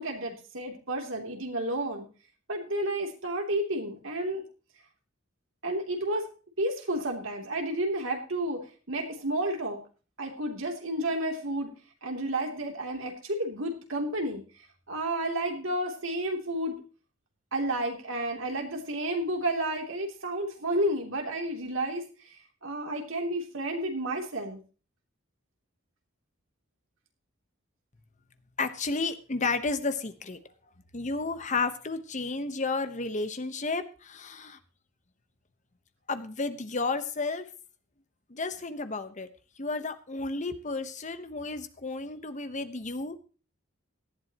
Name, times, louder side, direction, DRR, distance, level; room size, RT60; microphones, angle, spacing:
voice 1, 0.0-2.1 2.5-4.4 5.6-6.3 6.6-9.8 10.2-11.7 12.0-14.4 14.9-16.8 17.5-22.0 22.3-24.6, right 1 dB, 75° right, 2 dB, 3.0 m, -31 dB
voice 2, 28.6-30.4 30.9-34.6 36.1-37.4 38.3-39.3 39.6-43.2, left 3 dB, 35° left, 10 dB, 1.1 m, -32 dB
18.0 x 12.0 x 3.0 m, 0.36 s
head